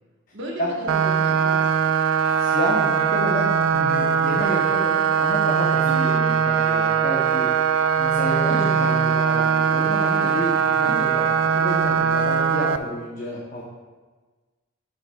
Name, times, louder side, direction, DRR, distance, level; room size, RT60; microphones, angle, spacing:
voice 1, 0.3-1.9 5.8-6.2 8.4-8.8 10.8-11.1, right 1 dB, 65° right, -2 dB, 1.3 m, -34 dB
sound 1, 0.9-12.8, right 7 dB, 80° right, 0.3 m, -21 dB
voice 2, 2.3-5.8 6.1-7.5 8.0-13.6, left 1 dB, 45° left, -4 dB, 0.8 m, -30 dB
9.6 x 5.5 x 2.3 m, 1.3 s
head